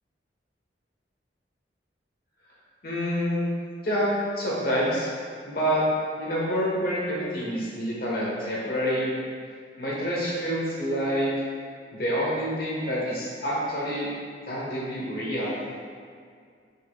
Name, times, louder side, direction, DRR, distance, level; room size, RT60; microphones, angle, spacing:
voice 1, 2.8-3.5 3.8-5.1 5.5-5.8 6.2-9.1 9.8-11.3 11.9-14.1 14.5-15.5, equal, 55° left, -5 dB, 1.1 m, -27 dB
5.3 x 4.2 x 2.2 m, 2.1 s
head